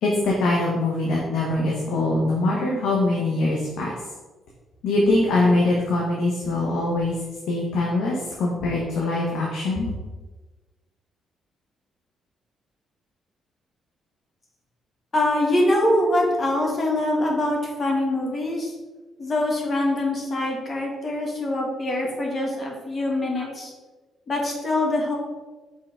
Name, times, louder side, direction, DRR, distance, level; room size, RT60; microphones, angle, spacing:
voice 1, 0.0-3.9 4.8-7.1 7.5-9.9, left 2 dB, 80° left, -3 dB, 1.1 m, -23 dB
voice 2, 15.1-18.7 19.2-23.7 24.3-25.2, left 1 dB, 40° left, -1 dB, 1.5 m, -24 dB
5.6 x 3.8 x 4.8 m, 1.2 s
cardioid pair, 90°, 0 cm